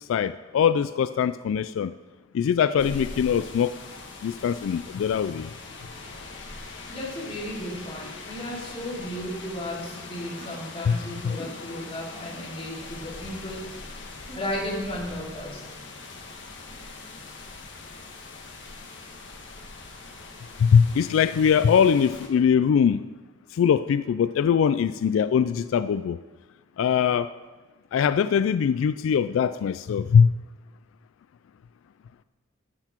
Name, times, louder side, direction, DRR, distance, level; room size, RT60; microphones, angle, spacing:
voice 1, 0.1-1.9 2.3-3.7 4.2-5.5 10.9-11.0 11.2-11.4 20.6-23.0 23.5-26.2 26.8-27.3 27.9-30.3, left 7 dB, 85° left, 14 dB, 0.3 m, -22 dB
sound 1, 2.8-22.3, left 3 dB, 65° left, 1.5 m, -42 dB
voice 2, 6.9-13.6 14.3-15.6, left 1 dB, 30° left, -5 dB, 2.9 m, -34 dB
sound 2, 9.8-11.1 11.8-12.8 14.1-15.0 16.5-17.4, right 1 dB, 25° right, 3.2 m, -51 dB
13.0 x 8.0 x 4.5 m, 1.3 s
head